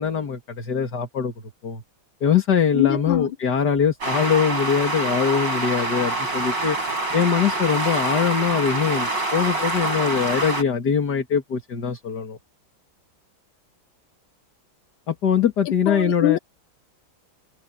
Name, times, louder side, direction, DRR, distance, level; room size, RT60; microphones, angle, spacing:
voice 1, 0.0-1.3 1.6-1.8 2.2-6.8 7.1-12.4 15.1-16.4, left 7 dB, 55° left, 2.8 m, -22 dB
voice 2, 2.7-3.3 15.9-16.4, left 13 dB, 80° left, 1.7 m, -23 dB
sound 1, 4.0-10.6, right 2 dB, 60° right, 8.7 m, -26 dB
omnidirectional pair, 2.2 m